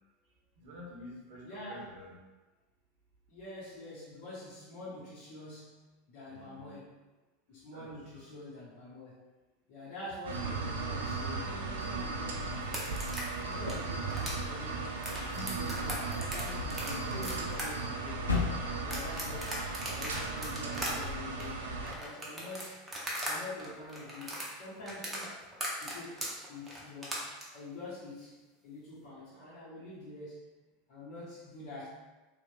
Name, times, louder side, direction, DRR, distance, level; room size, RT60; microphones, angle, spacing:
voice 1, 0.6-2.2 6.3-6.8 7.7-8.3, left 1 dB, 55° right, -3 dB, 0.7 m, -49 dB
voice 2, 1.4-1.9 3.3-5.8 6.1-7.0 7.5-9.2 9.7-13.0 13.4-18.2 18.8-19.6 19.9-21.7 22.0-25.4 25.7-27.2 27.5-30.4 30.9-31.9, left 1 dB, 45° left, -8 dB, 0.8 m, -46 dB
sound 1, 10.2-21.9, right 3 dB, 70° right, 0.3 m, -36 dB
sound 2, 12.6-23.3 23.6-27.4, right 1 dB, 15° right, 0.7 m, -39 dB
sound 3, 13.5-19.4, left 4 dB, 85° left, 0.4 m, -40 dB
3.0 x 2.1 x 2.5 m, 1.2 s
figure-of-eight pair, 80°, 0 cm